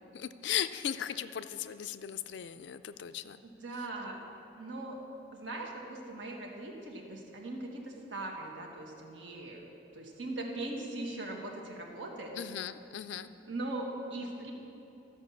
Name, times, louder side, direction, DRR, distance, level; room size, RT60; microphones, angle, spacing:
voice 1, 0.1-3.4 12.4-13.3, left 10 dB, 65° left, 12 dB, 0.4 m, -37 dB
voice 2, 3.4-4.2 4.5-5.0 5.3-9.6 9.9-12.3 13.4-14.5, right 2 dB, 75° right, 0 dB, 1.5 m, -40 dB
13.0 x 5.3 x 6.9 m, 2.8 s
head